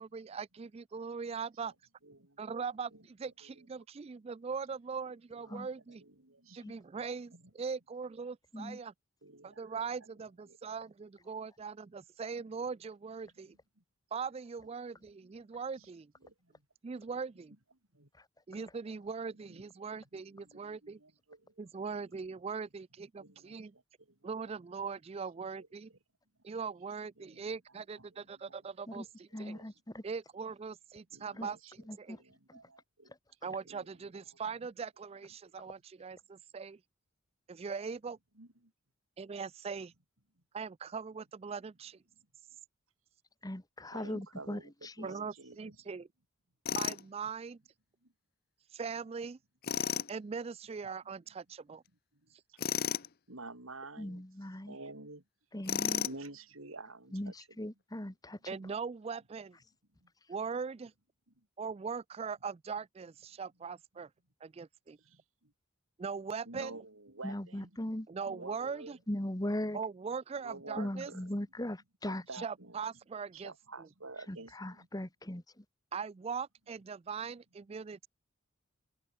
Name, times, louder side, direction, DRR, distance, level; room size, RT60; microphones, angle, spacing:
voice 1, 0.0-1.7 2.4-2.9 3.2-6.0 6.5-8.9 9.4-13.5 14.1-16.1 16.8-17.5 18.5-21.0 21.6-23.7 24.2-25.9 26.4-29.5 30.0-31.6 32.0-32.2 33.4-36.8 37.5-38.2 39.2-39.9 40.5-42.0 45.0-46.1 46.7-47.6 48.7-49.4 50.1-51.8 58.5-59.6 60.3-60.9 61.6-64.1 64.4-65.0 66.0-66.7 68.1-69.0 69.7-71.1 72.4-73.5 75.9-78.1, right 5 dB, 30° right, 0.3 m, -40 dB
voice 2, 2.0-3.1 3.4-3.7 5.3-6.6 6.9-7.5 9.2-10.8 13.3-13.8 14.8-15.9 16.2-16.7 17.1-17.2 17.5-17.6 17.9-18.1 19.3-21.7 22.0-22.2 23.2-24.5 25.6-26.0 27.2-29.7 31.1-33.4 33.7-34.7 35.4-35.6 38.3-38.7 40.4-40.5 42.1-42.3 43.9-45.9 48.0-48.1 51.3-51.4 51.7-51.8 52.1-52.9 53.3-55.3 55.9-57.8 59.9-60.1 61.3-61.5 64.5-64.7 65.0-65.5 66.5-67.8 68.3-69.0 70.3-71.4 72.0-72.8 73.3-74.9, right 2 dB, 75° right, 5.1 m, -52 dB
voice 3, 29.3-30.0 31.4-31.5 31.9-32.2 32.5-32.6 43.4-45.1 54.0-54.7 55.5-56.0 57.1-57.3 57.6-58.6 67.2-68.1 69.1-69.8 70.8-72.2 74.6-75.6, left 1 dB, 20° left, 1.5 m, -39 dB
Tools, 46.7-47.0 49.6-50.1 52.6-53.1 55.7-56.3, left 8 dB, 45° left, 0.8 m, -33 dB
head